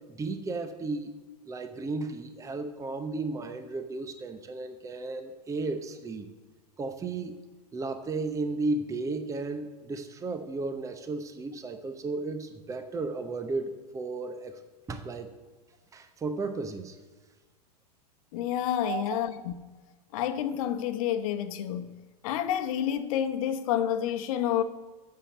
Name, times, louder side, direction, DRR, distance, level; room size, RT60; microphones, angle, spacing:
voice 1, 0.1-1.2 1.5-6.3 6.8-7.4 7.7-14.6 14.9-15.3 15.9-17.0 18.8-19.0, right 3 dB, 15° right, 0.9 m, -34 dB
voice 2, 18.3-19.3 20.1-21.9 22.2-24.6, left 10 dB, 55° left, 1.0 m, -29 dB
8.9 x 6.8 x 7.4 m
hypercardioid pair, 100°, 21 cm